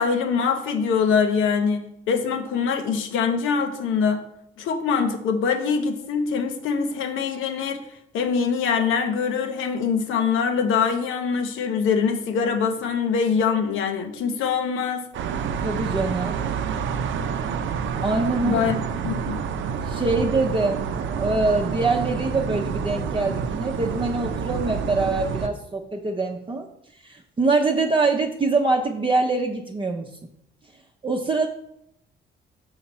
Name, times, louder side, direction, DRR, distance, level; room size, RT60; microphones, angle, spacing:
voice 1, 0.0-4.2 4.6-7.8 8.1-15.1 18.4-18.8 19.0-19.4, left 6 dB, 85° left, 7 dB, 0.9 m, -23 dB
sound 1, 15.1-25.5, right 6 dB, 75° right, 0.6 m, -28 dB
voice 2, 15.6-16.4 18.0-18.6 19.9-26.7 27.0-30.1 31.0-31.5, right 3 dB, 25° right, 1 dB, 0.7 m, -24 dB
5.8 x 5.7 x 4.2 m, 0.76 s
cardioid pair, 90°, 20 cm